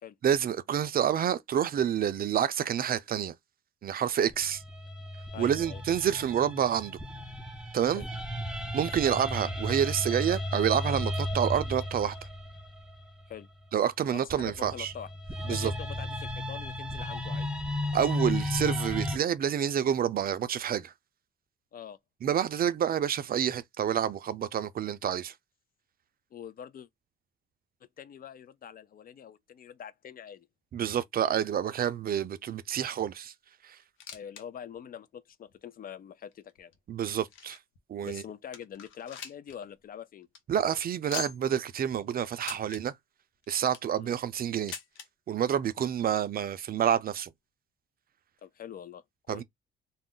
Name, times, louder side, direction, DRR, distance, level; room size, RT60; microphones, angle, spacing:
voice 1, 0.2-3.3 3.8-4.6 5.4-7.0 7.7-8.0 8.7-12.2 13.7-14.9 15.5-15.7 17.9-20.9 22.2-25.3 30.7-33.3 33.6-33.8 36.9-37.6 37.9-38.2 40.5-43.0 43.5-44.7 45.3-47.3 49.3-49.4, right 9 dB, 50° right, 0.4 m, -28 dB
sound 1, 4.3-13.4 14.3-19.2, left 1 dB, 5° right, 0.6 m, -34 dB
voice 2, 5.3-5.8 8.0-8.1 13.3-13.5 14.1-17.5 21.7-22.0 26.3-26.9 28.0-30.5 34.1-36.7 38.0-40.3 44.0-44.2 48.4-49.4, left 9 dB, 45° left, 0.4 m, -44 dB
sound 2, 33.8-34.4 34.7-34.8 35.5-35.6 36.3-37.8 38.2-38.3 38.5-39.6 39.9-40.0 40.2-40.4 41.1-41.6 42.4-42.8 43.4-44.0 44.7-45.1 46.0-46.1 46.3-46.4 47.2-47.3, left 8 dB, 85° left, 0.7 m, -42 dB
2.4 x 2.0 x 3.7 m
cardioid pair, 90°, 20 cm